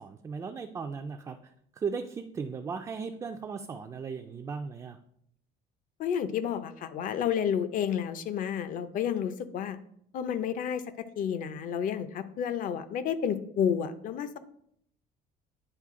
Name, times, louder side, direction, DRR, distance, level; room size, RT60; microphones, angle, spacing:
voice 1, 0.0-1.4 1.8-5.0, right 5 dB, 20° right, 4 dB, 0.3 m, -36 dB
voice 2, 6.0-9.8 10.1-14.4, left 8 dB, 50° left, 12 dB, 0.6 m, -31 dB
9.9 x 4.1 x 3.7 m, 0.70 s
cardioid pair, 150°, 18 cm